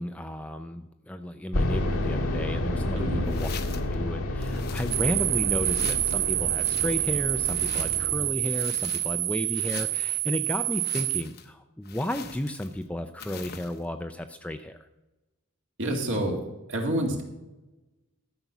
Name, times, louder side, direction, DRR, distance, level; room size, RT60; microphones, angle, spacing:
voice 1, 0.0-3.5 3.9-14.8, left 1 dB, 5° left, 7 dB, 0.4 m, -33 dB
sound 1, 1.5-8.3, left 1 dB, 85° left, 1.5 m, -30 dB
voice 2, 3.0-3.3 15.8-16.4 16.7-17.2, right 1 dB, 60° right, 1 dB, 2.1 m, -27 dB
sound 2, 3.3-3.9 4.4-5.3 5.6-6.2 6.6-8.1 8.4-9.3 9.5-10.2 10.7-11.5 11.9-12.8 13.2-13.8, left 6 dB, 45° left, 0.8 m, -43 dB
sound 3, 4.9-11.2, right 17 dB, 90° right, 0.4 m, -27 dB
13.0 x 6.8 x 6.0 m, 1.0 s
head